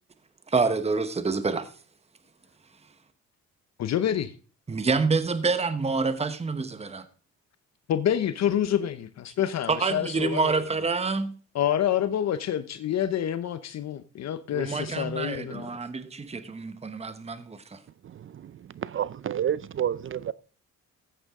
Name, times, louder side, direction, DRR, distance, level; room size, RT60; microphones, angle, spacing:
voice 1, 0.5-1.7 4.7-7.1 9.7-11.3 14.5-17.8, right 4 dB, 20° right, 1.1 m, -27 dB
voice 2, 3.8-4.3 7.9-10.6 11.5-15.7, left 10 dB, 60° left, 0.8 m, -27 dB
voice 3, 18.8-20.3, right 9 dB, 45° right, 0.5 m, -28 dB
14.5 x 9.2 x 3.7 m
cardioid pair, 90°, 30 cm